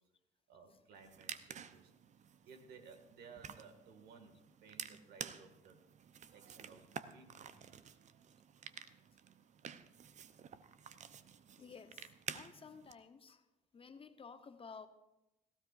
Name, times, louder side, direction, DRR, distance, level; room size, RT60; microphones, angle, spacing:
voice 1, 0.5-1.9 2.5-5.8 6.3-8.0, right 5 dB, 60° right, 5 dB, 2.1 m, -58 dB
sound 1, 0.9-12.9, right 7 dB, 40° right, 0.8 m, -51 dB
voice 2, 11.6-13.4 13.7-14.9, left 5 dB, 30° left, 10 dB, 0.9 m, -54 dB
17.5 x 15.5 x 2.6 m, 0.92 s
hypercardioid pair, 60°, 18 cm